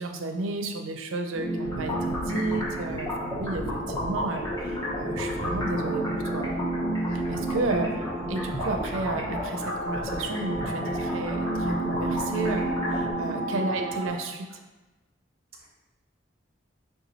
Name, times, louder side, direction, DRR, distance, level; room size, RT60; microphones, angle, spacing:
voice 1, 0.0-6.5 7.1-14.6, right 3 dB, 90° right, 5 dB, 0.4 m, -32 dB
sound 1, 1.3-14.1, right 1 dB, 10° right, 1.2 m, -32 dB
sound 2, 1.6-13.1, left 1 dB, 20° left, 0.8 m, -34 dB
voice 2, 6.9-7.7 13.1-13.3 15.6-15.7, right 6 dB, 30° right, -3 dB, 0.7 m, -46 dB
3.9 x 2.3 x 4.0 m, 1.2 s
head